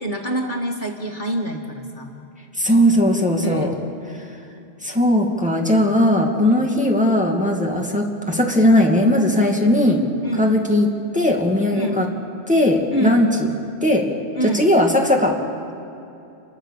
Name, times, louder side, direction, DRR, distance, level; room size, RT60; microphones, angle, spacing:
voice 1, 0.0-2.2 3.4-3.9 10.2-10.5 11.7-12.0 12.9-13.2 14.3-14.7, equal, 40° left, 1 dB, 1.9 m, -26 dB
voice 2, 2.6-3.7 4.8-10.1 10.4-10.9 11.1-12.1 12.5-13.5 13.8-14.1 14.4-15.4, left 1 dB, 5° right, 0 dB, 2.4 m, -18 dB
28.5 x 23.0 x 6.7 m, 2.8 s
omnidirectional pair, 1.2 m